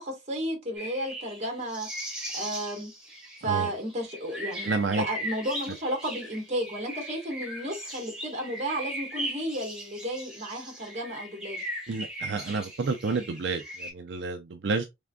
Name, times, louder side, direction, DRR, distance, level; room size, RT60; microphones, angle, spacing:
voice 1, 0.0-2.9 3.4-11.7, right 1 dB, 40° right, 1.5 m, -33 dB
sound 1, 0.8-13.9, right 1 dB, 5° right, 1.3 m, -38 dB
voice 2, 4.6-5.0 11.9-14.9, right 4 dB, 70° right, 0.5 m, -30 dB
3.6 x 3.4 x 2.2 m
head